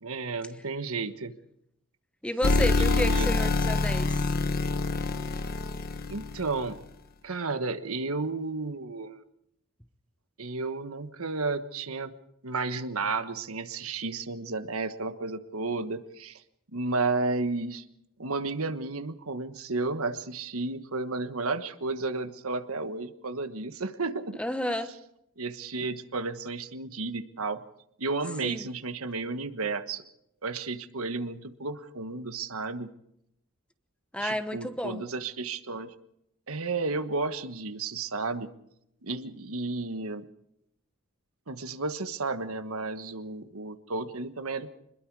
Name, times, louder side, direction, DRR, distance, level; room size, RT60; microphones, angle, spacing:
voice 1, 0.0-1.3 2.8-3.4 6.1-6.8 7.2-9.2 10.4-12.1 12.4-16.4 16.7-17.8 18.2-24.8 25.4-27.6 28.0-30.0 30.4-32.9 34.2-35.9 36.5-38.5 39.0-40.2 41.5-44.7, right 3 dB, 85° right, 10 dB, 1.4 m, -32 dB
voice 2, 2.2-4.2 24.4-24.9 28.4-28.7 34.1-35.0, left 1 dB, 5° left, 9 dB, 1.1 m, -31 dB
sound 1, 2.4-6.7, left 3 dB, 45° left, 1.3 m, -26 dB
26.0 x 21.0 x 4.8 m, 0.77 s
head